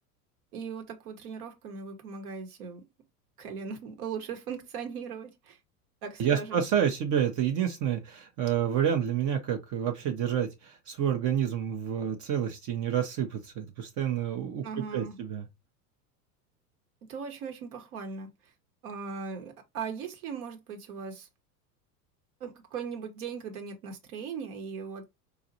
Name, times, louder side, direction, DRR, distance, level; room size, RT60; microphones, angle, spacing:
voice 1, 0.5-2.8 3.4-5.6 6.0-6.6 14.6-15.1 17.0-18.5 18.8-21.3 22.4-25.0, right 6 dB, 65° right, 1.1 m, -39 dB
voice 2, 6.2-14.6 14.9-15.4, right 9 dB, 40° right, 0.7 m, -29 dB
4.0 x 2.4 x 2.6 m
hypercardioid pair, 90°, 47 cm